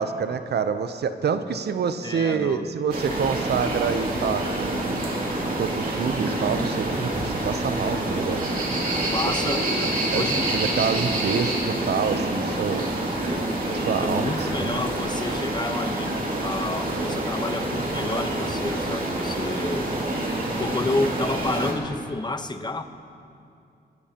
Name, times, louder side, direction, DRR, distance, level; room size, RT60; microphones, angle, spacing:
voice 1, 0.0-5.0 5.6-8.6 9.8-10.2 10.5-12.8 13.7-14.7, right 6 dB, 75° right, 10 dB, 0.7 m, -27 dB
voice 2, 2.0-2.7 9.1-10.5 14.0-19.9 20.6-22.8, left 2 dB, 25° left, 7 dB, 1.0 m, -30 dB
sound 1, 2.9-21.7, right 1 dB, 55° right, 2.6 m, -27 dB
24.0 x 13.5 x 2.9 m, 2.5 s
cardioid pair, 80°, 17 cm